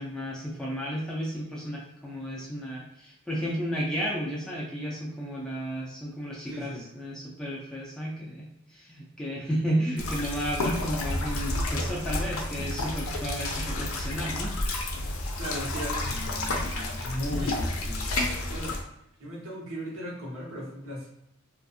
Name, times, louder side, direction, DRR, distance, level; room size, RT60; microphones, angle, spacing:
voice 1, 0.0-14.5, equal, 5° left, -5 dB, 0.4 m, -33 dB
voice 2, 6.4-6.8 15.4-18.7 19.2-21.1, equal, 80° right, -5 dB, 1.0 m, -37 dB
sound 1, 10.0-18.8, left 2 dB, 75° left, 0.4 m, -30 dB
2.4 x 2.3 x 2.5 m, 0.82 s
head